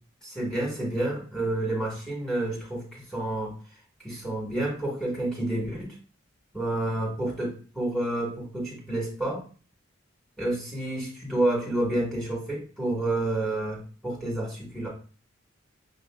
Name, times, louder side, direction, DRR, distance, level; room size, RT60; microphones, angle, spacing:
voice 1, 0.2-3.6 4.0-5.9 6.5-9.4 10.4-14.9, right 1 dB, ahead, -3 dB, 1.7 m, -29 dB
6.4 x 2.8 x 2.4 m, 0.40 s
head